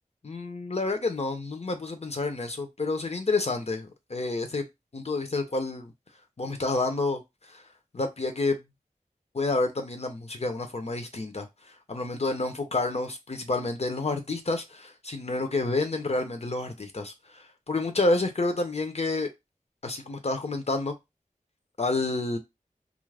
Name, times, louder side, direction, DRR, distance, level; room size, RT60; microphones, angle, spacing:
voice 1, 0.2-4.7 4.9-5.9 6.4-7.6 7.9-8.6 9.3-19.3 19.8-20.9 21.8-22.4, left 2 dB, 50° left, 0.6 m, -29 dB
2.4 x 2.0 x 3.2 m
wide cardioid pair, 40°, 14 cm